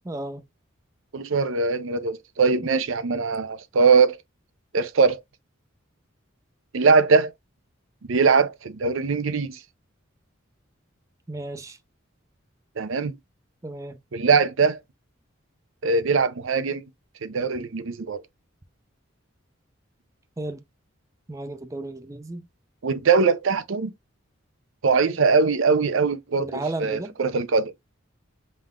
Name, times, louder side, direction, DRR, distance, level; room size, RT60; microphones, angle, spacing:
voice 1, 0.1-0.4 11.3-11.8 13.6-14.0 20.4-20.6 21.3-22.5 26.4-27.1, right 2 dB, 15° right, 0.4 m, -33 dB
voice 2, 1.1-4.2 4.7-5.2 6.7-7.3 8.1-9.6 12.8-13.2 14.1-14.8 15.8-16.8 17.2-18.2 22.8-23.9 24.8-27.7, right 4 dB, 80° right, 0.6 m, -21 dB
5.3 x 3.7 x 2.2 m
head